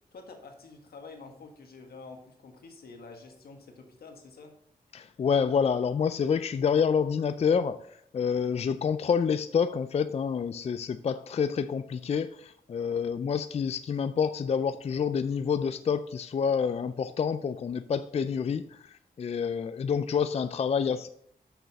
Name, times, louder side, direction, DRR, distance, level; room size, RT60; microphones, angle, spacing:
voice 1, 0.1-4.5, left 3 dB, 85° left, 3 dB, 1.6 m, -48 dB
voice 2, 4.9-7.8 8.1-21.1, left 6 dB, 40° left, 11 dB, 0.4 m, -28 dB
6.7 x 6.2 x 5.3 m, 0.70 s
wide cardioid pair, 105°, 16 cm